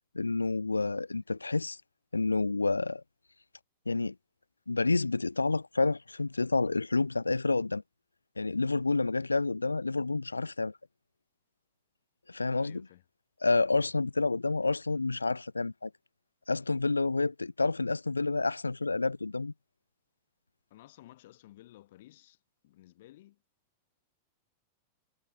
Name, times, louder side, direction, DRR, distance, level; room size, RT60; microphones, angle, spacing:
voice 1, 0.1-1.8 2.1-3.0 3.9-4.1 4.7-7.8 8.4-10.7 12.3-12.9 13.4-15.9 16.5-19.5, left 3 dB, 80° left, 0.5 m, -29 dB
voice 2, 12.6-13.0 20.7-22.4 22.6-23.4, left 15 dB, 55° left, 7.1 m, -55 dB
figure-of-eight pair, 90°, 0 cm